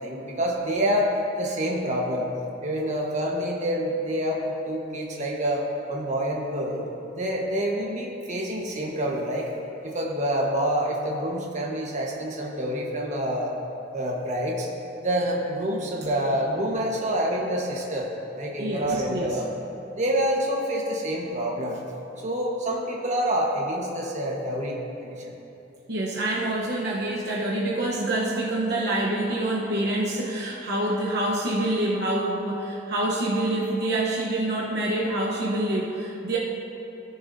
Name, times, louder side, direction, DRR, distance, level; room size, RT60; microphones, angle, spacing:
voice 1, 0.0-2.3 2.6-6.8 7.1-9.5 9.8-13.5 13.9-14.7 15.0-18.1 18.4-19.5 19.9-21.8 22.2-24.8 25.0-25.3, equal, 40° right, -2 dB, 1.3 m, -27 dB
voice 2, 18.6-19.4 25.9-36.4, right 1 dB, 60° right, -4 dB, 1.0 m, -26 dB
17.0 x 7.0 x 2.7 m, 2.9 s
head